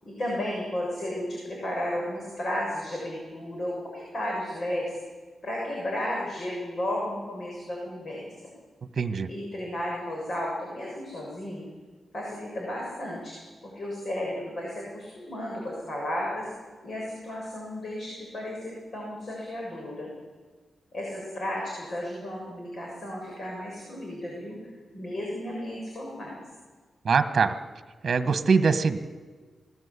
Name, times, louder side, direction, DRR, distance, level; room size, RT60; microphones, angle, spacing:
voice 1, 0.0-5.0 5.4-8.5 9.3-11.7 12.1-13.3 13.6-16.5 16.8-20.1 20.9-26.4, left 1 dB, 45° left, -2 dB, 7.3 m, -33 dB
voice 2, 8.9-9.3 27.0-27.6 28.0-29.0, right 5 dB, 50° right, 9 dB, 1.5 m, -22 dB
27.0 x 20.0 x 8.5 m, 1.5 s
wide cardioid pair, 125°, 0 cm